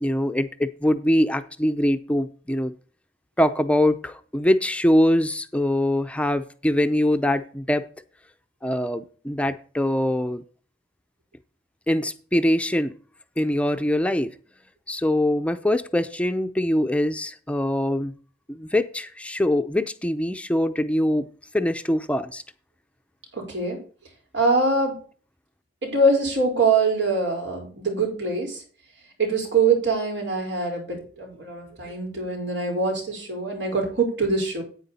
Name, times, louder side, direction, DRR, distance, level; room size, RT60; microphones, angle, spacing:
voice 1, 0.0-2.7 3.4-7.9 8.6-10.4 11.9-12.9 13.4-14.3 14.9-18.1 18.5-21.3 21.5-22.4, left 1 dB, 5° left, 9 dB, 0.5 m, -23 dB
voice 2, 23.3-23.8 24.3-25.0 25.8-28.6 29.2-34.6, right 3 dB, 85° right, 1 dB, 4.8 m, -23 dB
9.2 x 8.8 x 4.2 m, 0.41 s
head